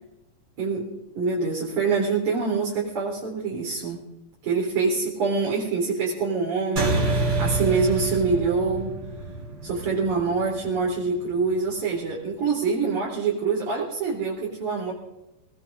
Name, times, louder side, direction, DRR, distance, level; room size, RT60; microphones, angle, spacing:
voice 1, 0.6-0.9 1.1-4.0 4.4-8.9 9.6-14.9, right 4 dB, 65° right, -5 dB, 5.0 m, -25 dB
sound 1, 6.8-11.6, right 3 dB, 35° right, 4.6 m, -28 dB
27.5 x 19.5 x 2.6 m, 0.93 s
omnidirectional pair, 3.8 m